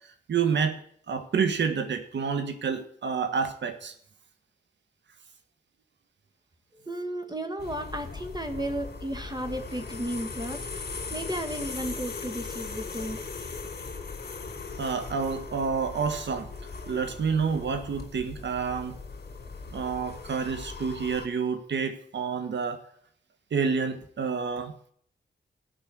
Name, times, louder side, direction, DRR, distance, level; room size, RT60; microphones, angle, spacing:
voice 1, 0.3-0.8 1.1-3.9 14.8-16.5 16.9-18.9 19.7-22.8 23.5-24.7, right 6 dB, 80° right, 8 dB, 1.6 m, -28 dB
voice 2, 6.9-13.3, right 1 dB, 25° right, 6 dB, 2.0 m, -34 dB
sound 1, 7.6-21.3, left 4 dB, 60° left, 2.7 m, -39 dB
15.5 x 5.6 x 7.9 m, 0.62 s
cardioid pair, 60°, 18 cm